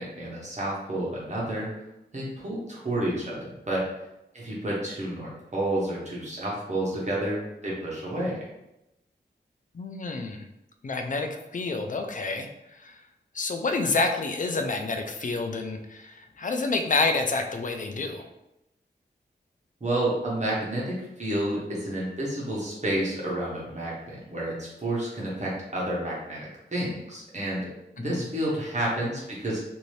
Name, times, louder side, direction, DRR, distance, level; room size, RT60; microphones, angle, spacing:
voice 1, 0.0-1.7 2.1-3.9 4.3-8.5 19.8-26.4 26.7-27.7 28.0-29.6, right 1 dB, 40° right, -6 dB, 1.0 m, -30 dB
voice 2, 9.7-10.5 10.8-13.0 13.3-18.3 28.0-28.2, left 3 dB, 45° left, 5 dB, 0.4 m, -29 dB
2.7 x 2.6 x 3.1 m, 0.90 s
wide cardioid pair, 55°, 18 cm